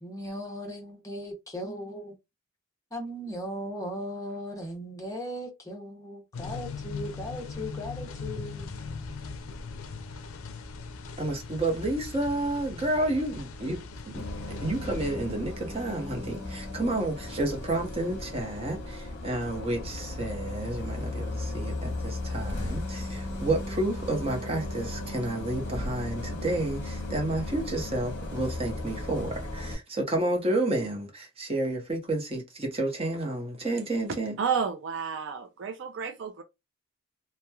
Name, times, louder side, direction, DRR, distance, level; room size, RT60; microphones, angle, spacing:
voice 1, 0.0-2.2 2.9-8.7, equal, 15° left, 0.7 m, -37 dB
sound 1, 6.3-15.2, left 4 dB, 75° left, 0.4 m, -39 dB
voice 2, 11.2-34.3, right 2 dB, 30° right, 0.7 m, -30 dB
Bus, 14.1-29.7, left 2 dB, 55° left, 0.8 m, -36 dB
voice 3, 34.4-36.4, right 6 dB, 55° right, 0.4 m, -31 dB
2.9 x 2.1 x 2.2 m
head